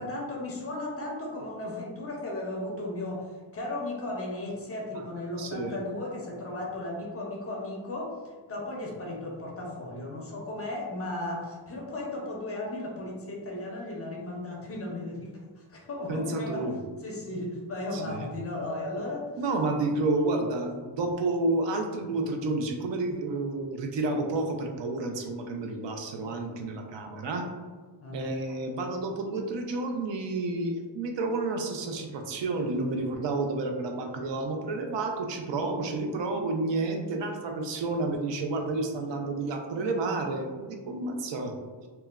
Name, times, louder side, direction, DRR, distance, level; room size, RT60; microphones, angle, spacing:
voice 1, 0.0-16.7 17.0-19.4 28.0-28.3, left 2 dB, 35° left, -1 dB, 0.4 m, -35 dB
voice 2, 5.4-5.8 16.1-16.8 17.9-18.3 19.4-27.4 28.1-41.5, right 2 dB, 70° right, 4 dB, 0.5 m, -30 dB
2.9 x 2.2 x 2.3 m, 1.4 s
wide cardioid pair, 165°, 45 cm